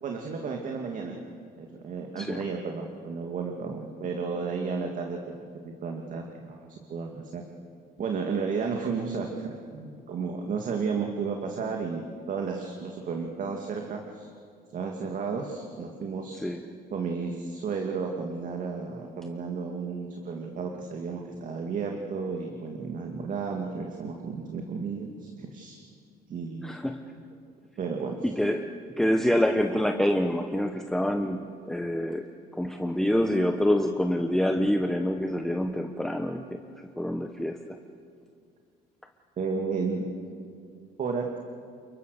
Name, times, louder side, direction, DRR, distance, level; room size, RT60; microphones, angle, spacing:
voice 1, 0.0-1.2 1.6-5.2 5.6-7.4 8.0-14.3 14.7-16.4 16.9-25.8 26.3-26.7 27.8-28.2 39.4-40.0 41.0-41.4, right 5 dB, 50° right, 2 dB, 2.3 m, -33 dB
voice 2, 2.2-2.5 16.3-16.6 26.6-27.0 28.2-28.7 29.0-32.3 32.5-36.6 37.0-37.6, left 1 dB, 5° left, 5 dB, 1.1 m, -26 dB
29.0 x 23.0 x 6.7 m, 2.3 s
cardioid pair, 110°, 17 cm